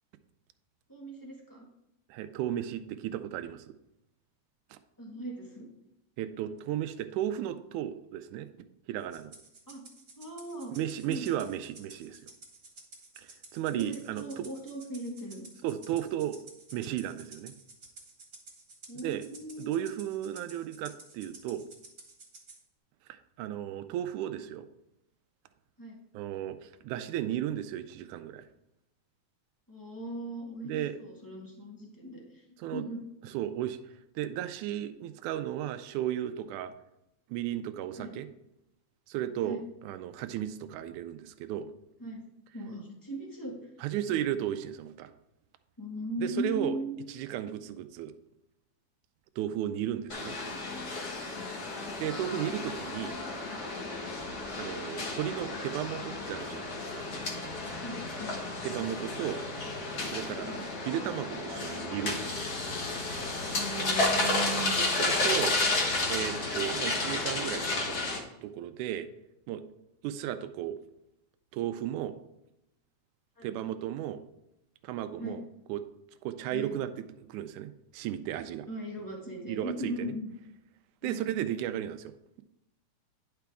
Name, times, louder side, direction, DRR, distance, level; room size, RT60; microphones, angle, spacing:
voice 1, 0.9-1.7 5.0-5.7 9.7-9.8 10.2-10.7 11.0-11.3 13.7-15.4 18.9-19.9 25.8-26.0 29.7-32.4 32.7-33.0 37.9-38.2 39.4-39.6 42.0-42.2 42.5-43.7 45.8-47.0 51.3-51.5 57.8-58.4 60.5-60.6 63.4-64.8 73.4-73.5 75.2-75.4 76.5-76.7 78.7-80.3 81.0-81.3, right 1 dB, 15° left, -2 dB, 0.7 m, -39 dB
voice 2, 2.1-3.7 4.7-4.8 6.2-8.5 8.9-9.3 10.7-12.3 13.2-14.5 15.6-16.4 16.7-17.5 19.0-19.2 19.6-21.7 23.1-24.7 26.1-28.4 30.6-31.0 32.6-32.8 33.3-33.8 34.2-36.7 37.3-38.3 39.1-41.7 43.8-45.1 46.2-46.8 47.1-48.1 49.4-50.4 52.0-53.2 54.6-57.1 58.6-59.4 60.1-60.6 60.9-62.5 64.8-65.6 66.1-68.0 68.4-69.1 69.5-69.6 70.0-70.8 71.5-72.2 73.4-74.2 74.8-75.4 75.7-75.8 76.2-76.9 77.2-78.7 79.5-80.1 81.0-82.4, right 11 dB, 85° right, 10 dB, 2.0 m, -34 dB
Rattle (instrument), 9.1-22.6, right 3 dB, 35° right, 1.7 m, -52 dB
sound 1, 50.1-68.2, left 2 dB, 50° left, 1.2 m, -32 dB
10.5 x 5.9 x 3.5 m, 0.86 s
omnidirectional pair, 3.6 m